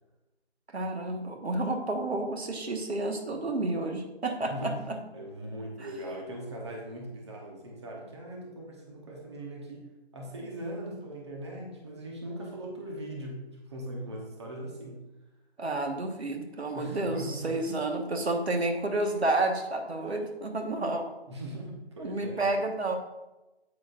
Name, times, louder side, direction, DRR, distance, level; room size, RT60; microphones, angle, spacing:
voice 1, 0.7-5.0 15.6-21.1 22.0-23.0, right 2 dB, 75° right, 4 dB, 1.6 m, -30 dB
voice 2, 4.5-4.8 5.1-9.9 10.1-13.4 13.7-15.0 16.7-17.6 20.0-20.2 21.3-22.5, right 1 dB, 25° right, -1 dB, 1.0 m, -40 dB
8.8 x 8.5 x 2.6 m, 1.0 s
figure-of-eight pair, 170°, 32 cm